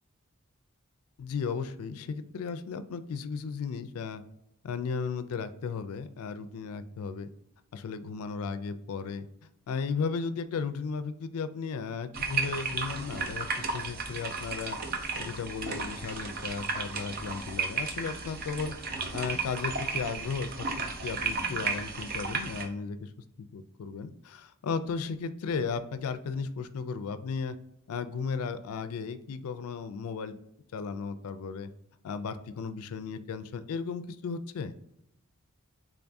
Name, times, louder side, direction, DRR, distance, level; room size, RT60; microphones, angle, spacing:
voice 1, 1.2-4.2 4.6-7.3 7.7-9.3 9.7-14.8 15.2-18.7 19.1-20.7 21.0-23.1 23.4-27.6 27.9-30.4 30.7-31.7 32.0-34.8, left 5 dB, 80° left, 12 dB, 0.4 m, -35 dB
sound 1, 12.1-22.7, right 4 dB, 40° right, 0.5 m, -34 dB
3.5 x 3.4 x 2.5 m, 0.78 s
head